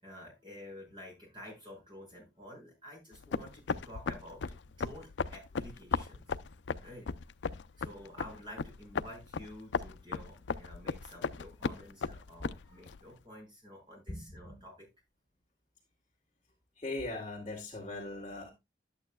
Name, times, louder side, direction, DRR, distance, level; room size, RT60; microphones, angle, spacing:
voice 1, 0.0-6.2 6.8-7.1 7.8-14.9, equal, 25° right, 5.8 m, -50 dB
sound 1, 3.1-13.0, left 5 dB, 80° left, 0.5 m, -37 dB
voice 2, 14.1-14.6 16.8-18.5, left 2 dB, 30° left, 2.3 m, -40 dB
11.5 x 8.8 x 2.3 m
head